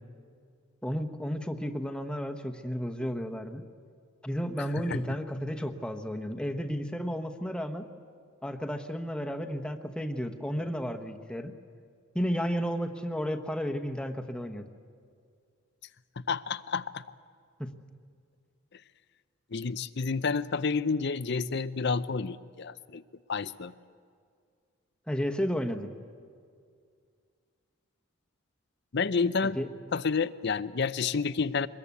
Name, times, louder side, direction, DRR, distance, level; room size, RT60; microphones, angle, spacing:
voice 1, 0.8-3.6 4.2-7.8 8.4-11.5 12.1-14.7 17.6-17.7 25.1-25.9 29.4-29.6, equal, 5° left, 5 dB, 1.1 m, -32 dB
voice 2, 16.3-17.0 19.5-23.0 23.3-23.7 28.9-29.6 29.9-31.7, left 5 dB, 55° left, 15 dB, 0.6 m, -29 dB
24.0 x 21.0 x 8.4 m, 2.2 s
head